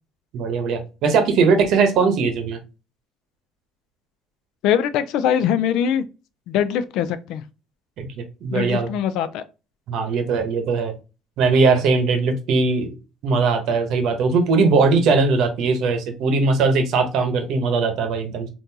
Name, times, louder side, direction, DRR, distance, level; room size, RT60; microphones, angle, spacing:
voice 1, 0.3-2.6 8.0-8.9 9.9-10.9 11.4-12.9 13.2-18.5, right 4 dB, 70° right, 0.9 m, -20 dB
voice 2, 4.6-6.0 6.5-7.4 8.5-9.4, left 9 dB, 80° left, 0.4 m, -22 dB
3.7 x 2.6 x 2.7 m
cardioid pair, 150°, 0 cm